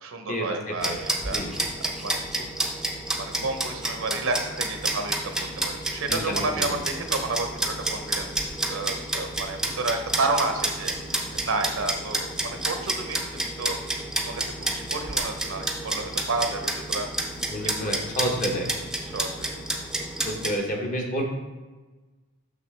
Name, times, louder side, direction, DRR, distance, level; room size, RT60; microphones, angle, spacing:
voice 1, 0.0-1.4 2.0-2.7 3.2-13.9 14.2-17.1 17.6-18.0 19.1-19.5, right 3 dB, 60° right, 6 dB, 0.7 m, -31 dB
sound 1, 0.8-20.5, right 1 dB, 5° right, 0.5 m, -30 dB
voice 2, 6.1-6.7 17.5-18.7 20.2-21.2, equal, 35° left, 1 dB, 0.9 m, -29 dB
6.8 x 6.0 x 3.3 m, 1.3 s
head